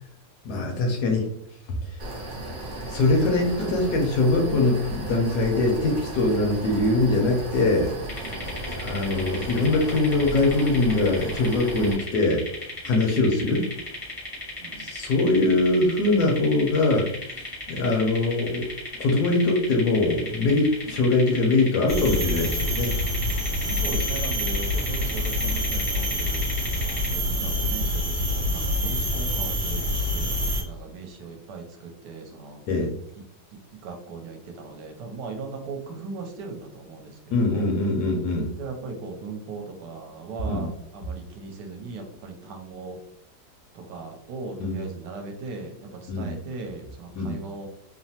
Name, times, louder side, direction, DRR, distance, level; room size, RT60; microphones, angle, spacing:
voice 1, 0.4-1.3 1.9-2.0 2.9-8.0 8.7-12.4 12.8-13.7 14.8-17.1 17.3-18.7 19.0-22.9 32.7-32.9 37.3-38.5 40.5-40.7 44.6-44.8 46.1-46.3 47.2-47.4, left 2 dB, 70° left, 2 dB, 1.0 m, -22 dB
sound 1, 2.0-11.9, right 1 dB, 60° right, 0.5 m, -35 dB
sound 2, 8.1-27.1, left 1 dB, 25° left, 0.4 m, -37 dB
voice 2, 14.6-14.9 23.7-26.5 27.1-32.6 33.8-37.7 38.6-43.0 43.7-47.7, right 4 dB, 75° right, 3 dB, 1.1 m, -38 dB
sound 3, 21.9-30.6, left 1 dB, 35° right, 0.9 m, -26 dB
3.1 x 2.0 x 2.7 m, 0.70 s
omnidirectional pair, 2.0 m